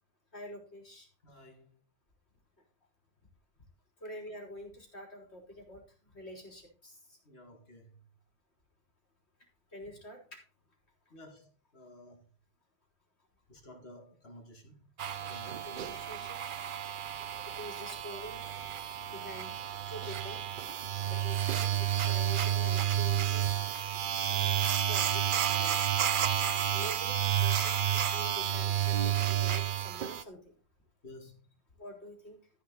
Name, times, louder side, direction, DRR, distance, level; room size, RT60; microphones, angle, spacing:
voice 1, 0.3-1.1 4.0-5.8 6.1-7.2 9.7-10.4 15.6-16.4 17.4-18.4 19.1-19.5 19.9-20.4 21.1-23.7 24.8-25.8 26.7-30.5 31.8-32.4, equal, 80° left, 4.0 m, -46 dB
voice 2, 1.2-1.8 7.3-8.0 11.1-12.2 13.5-14.9 15.3-15.9 31.0-31.5, left 1 dB, 65° left, 2.5 m, -53 dB
sound 1, 15.0-30.2, right 10 dB, 55° right, 0.7 m, -31 dB
14.0 x 7.0 x 3.9 m
omnidirectional pair, 1.1 m